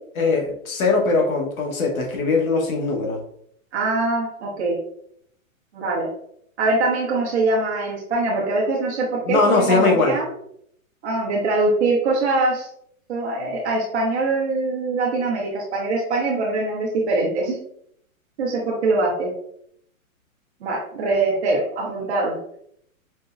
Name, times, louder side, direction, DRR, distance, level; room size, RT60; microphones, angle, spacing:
voice 1, 0.2-3.2 9.2-10.1, left 3 dB, 75° left, 0 dB, 1.2 m, -20 dB
voice 2, 3.7-4.8 5.7-6.1 6.6-10.3 11.0-12.7 13.1-17.6 18.4-19.3 20.6-22.4, right 2 dB, 50° right, -4 dB, 0.9 m, -23 dB
5.1 x 2.0 x 2.4 m, 0.70 s
hypercardioid pair, 170°, 42 cm